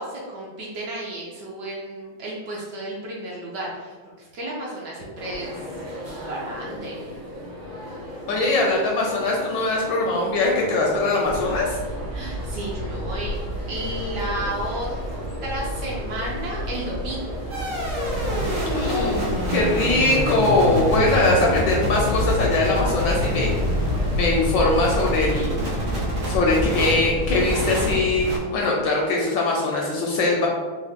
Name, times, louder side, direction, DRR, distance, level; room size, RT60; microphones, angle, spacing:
voice 1, 0.0-5.7 6.2-7.0 12.1-13.4 13.7-14.9 15.4-17.3 20.9-21.0, right 1 dB, 70° right, -3 dB, 1.1 m, -32 dB
sound 1, 5.2-25.1, left 1 dB, 50° right, 0.7 m, -36 dB
voice 2, 8.3-11.8 18.7-23.5 24.1-25.6 26.3-30.5, left 2 dB, 75° left, -2 dB, 1.1 m, -21 dB
sound 2, 11.2-27.8, equal, 55° left, 0.7 m, -33 dB
sound 3, 17.5-28.4, equal, 85° right, 1.8 m, -26 dB
4.5 x 2.0 x 3.4 m, 1.5 s
omnidirectional pair, 2.3 m